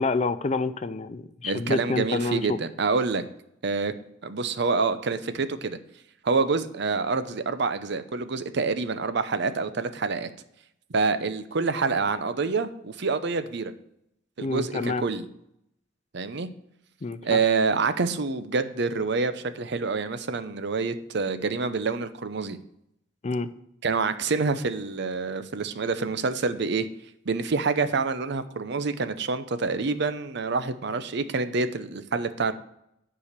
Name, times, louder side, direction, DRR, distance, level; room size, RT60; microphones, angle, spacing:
voice 1, 0.0-2.5 14.4-15.0 17.0-17.4 23.2-23.5, left 3 dB, 35° left, 12 dB, 0.5 m, -28 dB
voice 2, 1.4-3.2 3.6-3.9 4.2-5.8 6.2-10.3 10.9-13.7 14.4-15.3 16.1-16.5 17.2-22.6 23.8-26.9 27.3-32.5, right 4 dB, 65° right, 11 dB, 0.7 m, -27 dB
10.0 x 4.9 x 6.6 m, 0.77 s
head